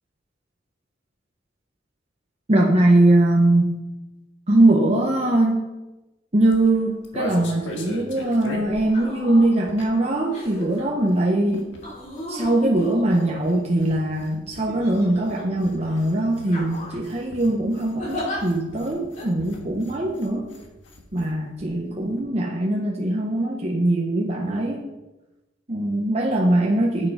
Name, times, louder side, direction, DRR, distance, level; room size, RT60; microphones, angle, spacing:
voice 1, 2.5-3.7 4.5-5.6 6.3-11.7 12.3-20.5 21.1-24.9 25.7-27.1, right 1 dB, 35° right, -1 dB, 1.0 m, -21 dB
sound 1, 6.4-10.1 10.4-21.3 21.6-21.7 21.9-22.2, left 1 dB, 85° left, 1.6 m, -40 dB
sound 2, 8.1-8.4 8.8-9.5 10.3-10.8 11.8-13.9 14.7-15.4 15.8-16.0 16.5-17.1 18.0-18.4 19.2-19.3, left 1 dB, 40° left, 3.3 m, -35 dB
8.5 x 7.5 x 5.1 m, 1.0 s
head